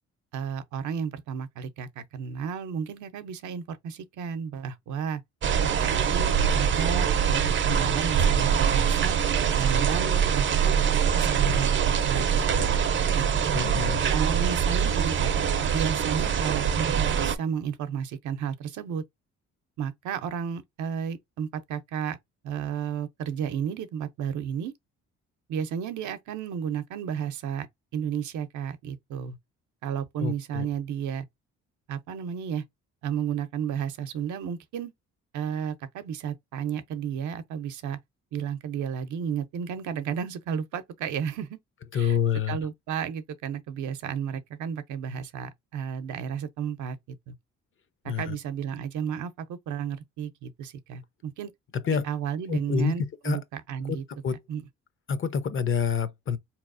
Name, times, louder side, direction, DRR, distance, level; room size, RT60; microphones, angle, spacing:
voice 1, 0.3-5.2 5.6-9.2 9.6-12.8 13.1-13.3 14.1-15.3 15.7-19.0 19.8-22.2 22.4-24.7 25.5-27.7 27.9-29.4 29.8-31.2 31.9-32.6 33.0-34.9 35.3-38.0 38.3-41.6 41.9-42.2 42.5-47.0 47.3-47.4 48.0-51.5 51.9-54.0 54.5-54.6, right 7 dB, 75° right, 0.7 m, -32 dB
sound 1, 5.4-17.4, right 7 dB, 40° right, 0.5 m, -24 dB
voice 2, 13.5-14.0 30.2-30.7 41.9-42.6 48.1-48.4 51.8-52.0 52.5-52.9 53.2-53.4 53.9-54.0 54.2-54.4 55.1-56.4, left 6 dB, 45° left, 0.7 m, -27 dB
4.0 x 2.9 x 2.5 m
cardioid pair, 90°, 30 cm